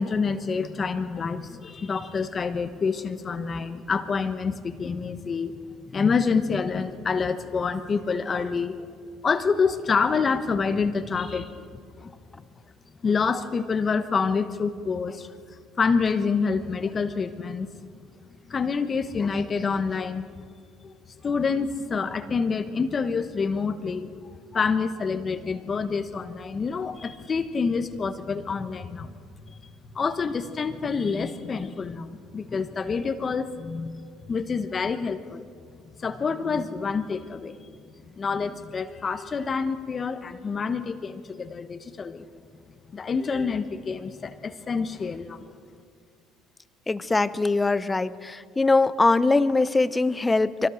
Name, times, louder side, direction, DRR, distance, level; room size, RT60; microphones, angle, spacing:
voice 1, 0.0-5.6 5.9-9.0 9.2-11.6 12.0-12.1 13.0-15.3 15.8-17.7 18.5-20.3 20.8-20.9 21.2-29.1 29.4-29.6 29.9-35.5 36.0-37.6 38.1-42.3 42.9-45.4, left 5 dB, 35° left, 10 dB, 1.0 m, -27 dB
voice 2, 46.9-50.7, left 3 dB, 15° left, 16 dB, 0.7 m, -22 dB
23.5 x 18.0 x 6.4 m, 2.2 s
supercardioid pair, 85°, 0 cm